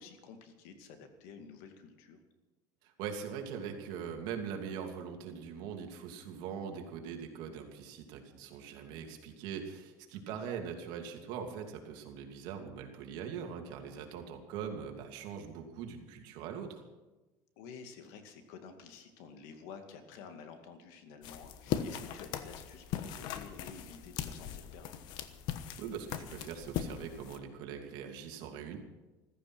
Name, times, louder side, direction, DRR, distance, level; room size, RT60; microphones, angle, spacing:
voice 1, 0.0-2.2 10.3-10.4 17.6-25.0, left 6 dB, 80° left, 7 dB, 2.2 m, -51 dB
voice 2, 2.8-16.8 25.8-28.8, right 7 dB, 65° right, 3 dB, 2.7 m, -42 dB
sound 1, 21.2-27.4, left 9 dB, 60° left, 1.2 m, -39 dB
15.0 x 14.0 x 6.2 m, 1.1 s
cardioid pair, 145°, 8 cm